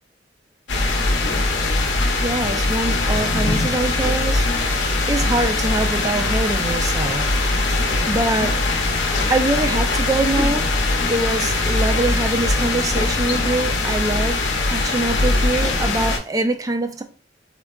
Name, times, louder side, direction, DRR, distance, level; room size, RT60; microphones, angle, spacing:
sound 1, 0.7-16.2, left 2 dB, 85° left, 0.7 m, -21 dB
voice 1, 1.3-14.4 14.7-17.0, right 2 dB, 20° right, 0.3 m, -25 dB
3.6 x 2.2 x 2.2 m
head